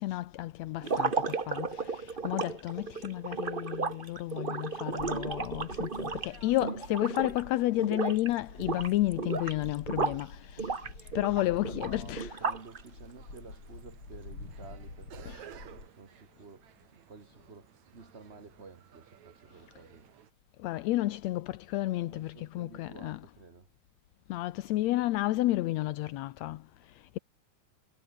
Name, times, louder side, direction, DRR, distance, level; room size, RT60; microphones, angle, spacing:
voice 1, 0.0-12.4 15.3-15.4 20.6-23.2 24.3-27.2, left 16 dB, 75° left, 1.8 m, -32 dB
sound 1, 0.8-7.5 7.8-8.3 8.6-10.2 10.6-12.8, right 4 dB, 90° right, 0.4 m, -34 dB
sound 2, 5.0-7.8 8.1-15.9, left 3 dB, 40° left, 7.1 m, -47 dB
voice 2, 11.3-20.1 21.9-23.7, right 4 dB, 25° right, 2.0 m, -52 dB
sound 3, 12.6-20.3, right 9 dB, 65° right, 3.1 m, -56 dB
omnidirectional pair, 3.5 m